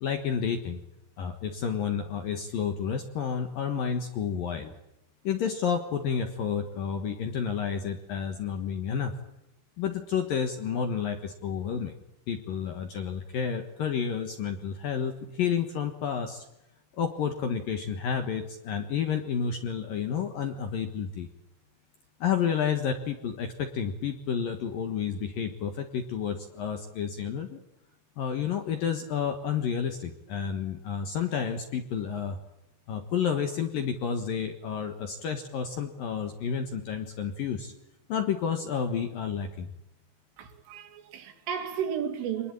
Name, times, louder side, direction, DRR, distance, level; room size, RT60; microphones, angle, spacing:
voice 1, 0.0-0.8 1.2-4.7 5.2-9.1 9.8-11.9 12.3-16.5 17.0-21.3 22.2-27.6 28.2-32.4 32.9-37.7 38.1-39.7, left 7 dB, 65° left, 2.4 m, -30 dB
voice 2, 40.4-42.5, right 8 dB, 75° right, 4.9 m, -33 dB
26.5 x 20.5 x 8.9 m
omnidirectional pair, 5.8 m